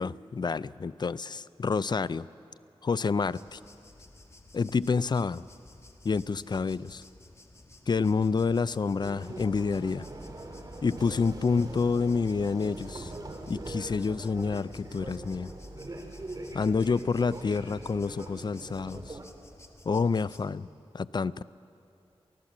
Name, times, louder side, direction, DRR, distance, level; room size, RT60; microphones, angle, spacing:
voice 1, 0.0-2.3 2.8-3.6 4.5-5.4 6.0-7.0 7.9-10.1 10.8-13.1 13.5-15.5 16.5-19.2 19.9-20.7 20.9-21.4, left 5 dB, 45° left, 18 dB, 0.4 m, -28 dB
sound 1, 3.3-20.5, left 2 dB, 25° left, 1.5 m, -54 dB
sound 2, 9.0-19.3, right 2 dB, 40° right, 2.1 m, -42 dB
23.5 x 15.5 x 7.5 m, 2.6 s
cardioid pair, 60°, 10 cm